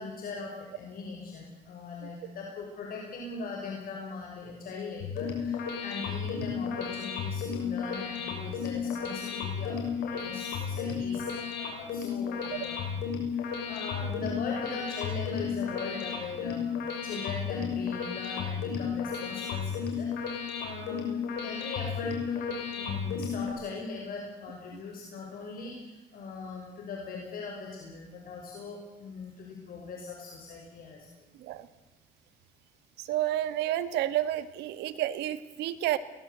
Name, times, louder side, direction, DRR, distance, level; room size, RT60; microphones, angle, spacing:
voice 1, 0.0-13.0 13.3-16.7 17.0-31.1, left 4 dB, 60° left, 0 dB, 5.8 m, -40 dB
sound 1, 5.0-23.5, left 6 dB, 90° left, 6.7 m, -33 dB
voice 2, 33.1-36.0, right 13 dB, 85° right, 12 dB, 1.8 m, -30 dB
23.0 x 19.0 x 8.2 m, 1.1 s
cardioid pair, 110°, 17 cm